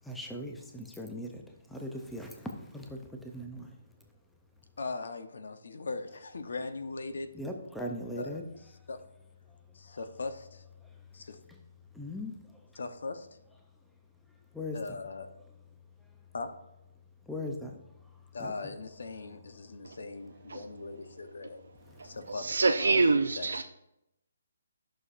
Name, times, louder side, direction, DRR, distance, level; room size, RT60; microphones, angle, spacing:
voice 1, 0.0-1.4 1.7-3.7 7.3-8.4 10.8-10.9 11.5-11.6 11.9-12.6 14.5-15.0 17.3-17.8 18.4-18.5 21.8-22.2, left 1 dB, ahead, 0.4 m, -39 dB
voice 2, 4.8-7.3 8.2-8.4 8.9-9.0 9.7-10.6 11.1-11.4 12.8-13.3 14.7-15.3 16.3-16.5 18.3-21.7 22.0-23.0 23.4-23.6, left 3 dB, 60° left, 0.8 m, -39 dB
voice 3, 22.4-23.6, right 3 dB, 85° right, 0.5 m, -25 dB
12.5 x 6.3 x 2.5 m
hypercardioid pair, 175°, 0 cm